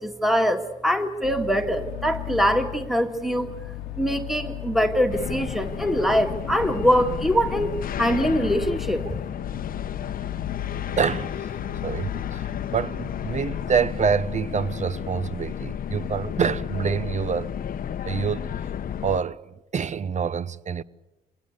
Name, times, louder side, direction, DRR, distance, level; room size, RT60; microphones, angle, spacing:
voice 1, 0.0-3.5 4.0-7.7 8.0-9.0, equal, ahead, 2.1 m, -23 dB
Metal Fan, 1.2-13.7, left 13 dB, 90° left, 1.2 m, -36 dB
sound 1, 5.1-19.2, left 9 dB, 55° left, 0.8 m, -32 dB
voice 2, 11.0-11.5 11.8-17.5 18.1-18.5 19.0-19.4 19.7-20.8, right 6 dB, 40° right, 0.9 m, -26 dB
26.5 x 19.0 x 8.4 m
hypercardioid pair, 55°, 18 cm